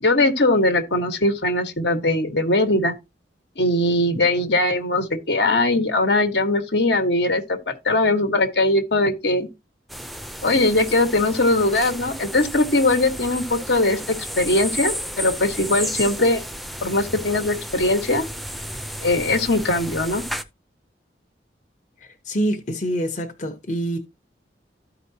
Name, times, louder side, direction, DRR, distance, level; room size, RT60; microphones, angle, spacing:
voice 1, 0.0-2.9 3.6-9.5 10.4-16.4 16.8-18.2 19.0-20.2, left 2 dB, 70° left, 1.4 m, -20 dB
sound 1, 9.9-20.4, equal, ahead, 0.5 m, -33 dB
voice 2, 22.0-24.0, right 1 dB, 40° left, 1.0 m, -26 dB
13.5 x 5.0 x 2.8 m
head